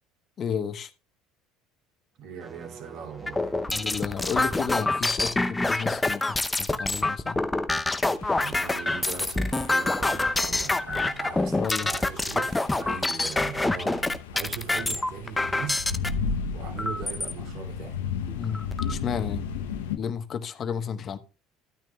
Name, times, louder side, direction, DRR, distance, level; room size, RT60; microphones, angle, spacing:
voice 1, 0.4-0.9 3.7-7.4 11.5-11.9 18.3-18.6 18.9-19.5 20.0-21.2, left 7 dB, 45° left, 1.2 m, -32 dB
sound 1, 2.2-5.0, right 4 dB, 30° right, 2.1 m, -46 dB
voice 2, 2.2-3.6 8.3-15.8 16.5-18.0, right 7 dB, 60° right, 2.7 m, -39 dB
sound 2, 3.3-16.1 16.8-17.3 17.9-18.0 18.3-18.9, left 2 dB, 15° left, 0.7 m, -26 dB
sound 3, 8.2-20.0, left 5 dB, 85° left, 0.8 m, -35 dB
13.5 x 9.2 x 2.3 m
hypercardioid pair, 75°, 0 cm